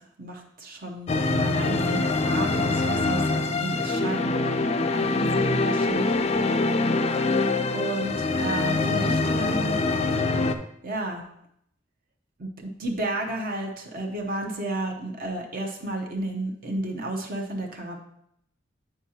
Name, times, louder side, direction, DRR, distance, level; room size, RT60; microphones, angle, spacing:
voice 1, 0.0-6.1 7.7-9.8 10.8-11.2 12.4-18.0, right 1 dB, 50° right, 1 dB, 0.8 m, -32 dB
sound 1, 1.1-10.6, left 3 dB, 35° left, 0.4 m, -24 dB
8.9 x 4.7 x 2.9 m, 0.74 s
head